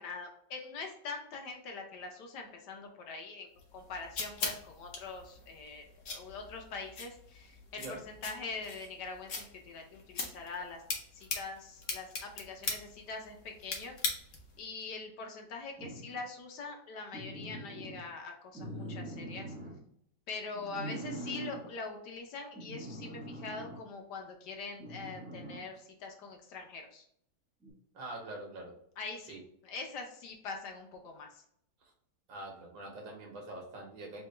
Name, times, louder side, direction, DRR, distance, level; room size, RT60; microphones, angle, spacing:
voice 1, 0.0-10.8 11.1-13.9 14.6-19.5 20.3-27.0 29.0-31.4, left 4 dB, 70° left, 3 dB, 1.3 m, -43 dB
sound 1, 3.6-14.6, left 4 dB, 50° left, 1.0 m, -41 dB
sound 2, 15.8-16.2 17.1-18.0 18.5-19.8 20.5-21.6 22.6-23.8 24.8-25.7 27.6-27.7, right 1 dB, 5° right, 1.5 m, -43 dB
voice 2, 27.9-28.7 29.3-29.4 31.8-31.9 32.3-34.2, right 2 dB, 85° right, 1 dB, 1.9 m, -44 dB
3.8 x 3.3 x 3.2 m, 0.70 s
omnidirectional pair, 2.0 m